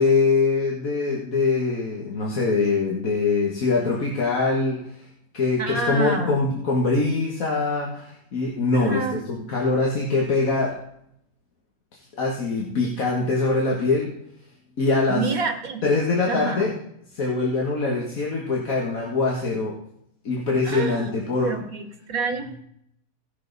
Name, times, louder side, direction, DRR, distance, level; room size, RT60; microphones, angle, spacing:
voice 1, 0.0-5.0 5.3-10.8 11.9-14.1 14.8-15.2 15.8-16.7 17.1-19.8 20.2-21.6, left 3 dB, 75° left, -2 dB, 2.0 m, -23 dB
voice 2, 5.6-6.5 8.7-9.2 15.1-15.8 16.3-16.7 20.6-21.1 21.4-22.5, right 3 dB, 80° right, 4 dB, 2.1 m, -28 dB
17.5 x 6.3 x 4.0 m, 0.73 s
omnidirectional pair, 1.5 m